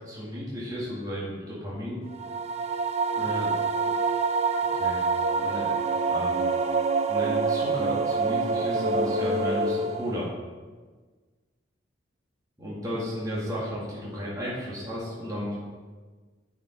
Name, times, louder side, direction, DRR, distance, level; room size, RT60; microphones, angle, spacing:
voice 1, 0.1-2.0 3.1-3.5 3.8-3.9 4.8-5.0 5.4-5.7 6.1-6.4 7.1-10.3 12.6-15.6, equal, 20° right, -7 dB, 1.9 m, -33 dB
sound 1, 2.1-10.3, right 4 dB, 35° right, 0.5 m, -26 dB
10.0 x 5.2 x 4.5 m, 1.4 s
head